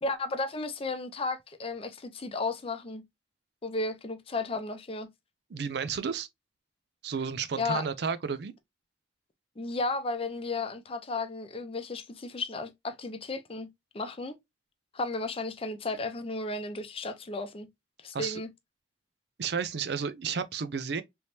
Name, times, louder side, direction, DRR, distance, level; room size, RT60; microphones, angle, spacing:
voice 1, 0.0-3.0 3.6-5.1 7.6-7.9 9.6-13.7 13.9-14.3 14.9-17.7 18.0-18.5, left 3 dB, 35° left, 0.6 m, -34 dB
voice 2, 5.5-6.3 7.0-8.5 18.1-18.4 19.4-21.0, right 6 dB, 65° right, 0.5 m, -32 dB
3.4 x 3.0 x 2.7 m
head